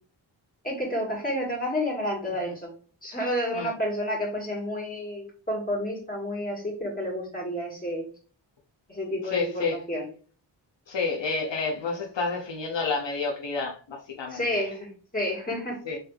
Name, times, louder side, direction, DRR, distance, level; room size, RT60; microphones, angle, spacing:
voice 1, 0.6-2.7 3.0-8.1 8.9-10.1 14.3-15.8, equal, 20° left, 2.5 m, -30 dB
voice 2, 9.2-9.8 10.9-14.7 15.8-16.0, left 4 dB, 70° left, 1.0 m, -30 dB
4.1 x 3.4 x 3.3 m
cardioid pair, 65°, 45 cm